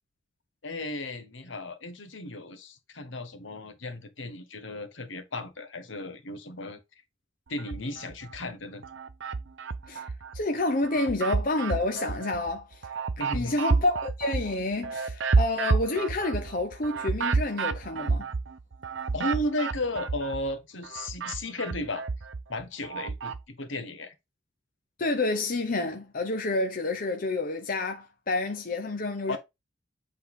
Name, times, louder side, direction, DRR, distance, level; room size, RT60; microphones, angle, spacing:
voice 1, 0.6-6.8 7.5-8.8 13.2-13.6 19.1-22.0 22.5-24.1 29.3-29.4, left 1 dB, 70° left, 1.4 m, -35 dB
sound 1, 7.6-8.4 8.8-10.4 10.8-20.5 20.8-23.4, right 4 dB, 65° right, 0.7 m, -30 dB
voice 2, 9.9-12.8 13.3-18.3 25.0-29.4, left 2 dB, 45° left, 0.9 m, -29 dB
8.0 x 4.1 x 3.7 m
head